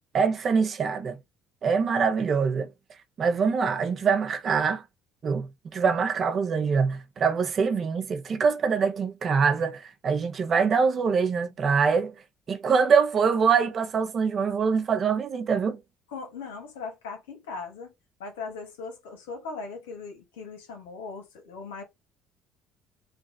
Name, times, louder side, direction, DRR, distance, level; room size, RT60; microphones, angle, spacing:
voice 1, 0.1-1.2 1.6-2.7 3.2-4.8 5.2-12.1 12.5-15.8, right 5 dB, 45° right, 0.7 m, -24 dB
voice 2, 16.1-17.9 18.2-21.8, left 4 dB, 90° left, 1.2 m, -39 dB
3.3 x 2.3 x 4.2 m
hypercardioid pair, 70°, 0 cm